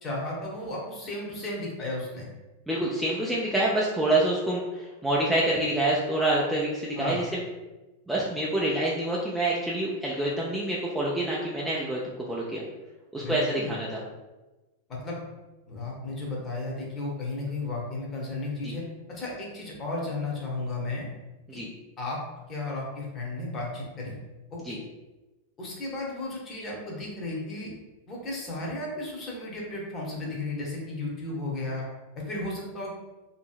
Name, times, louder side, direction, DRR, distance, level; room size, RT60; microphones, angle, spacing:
voice 1, 0.0-2.3 6.9-7.3 13.2-13.8 14.9-15.2 15.7-18.8 19.1-21.1 22.0-22.2 22.5-24.1 24.5-24.8 25.6-27.7 28.1-31.8 32.1-32.9, left 2 dB, 25° left, -3 dB, 0.9 m, -34 dB
voice 2, 2.7-7.3 8.1-12.6 13.1-14.0 18.6-18.8 21.6-21.7 24.6-24.8, right 1 dB, 5° right, -5 dB, 0.4 m, -27 dB
2.7 x 2.7 x 2.3 m, 1.1 s
figure-of-eight pair, 90°, 0 cm